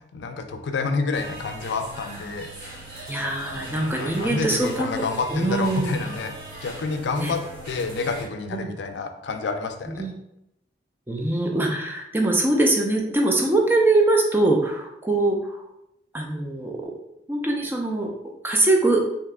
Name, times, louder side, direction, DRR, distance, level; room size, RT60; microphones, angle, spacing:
voice 1, 0.0-2.5 3.6-6.3 6.6-7.4 7.7-10.1, left 4 dB, 85° left, 6 dB, 0.4 m, -29 dB
sound 1, 1.1-8.3, right 1 dB, 55° right, 1.1 m, -40 dB
voice 2, 3.1-5.0 5.3-5.9 7.2-7.3 8.5-8.7 10.0-10.1 11.1-15.6 16.1-16.9 17.3-18.1 18.4-19.0, right 2 dB, 10° right, 0 dB, 0.3 m, -22 dB
3.3 x 2.8 x 2.4 m, 0.82 s
head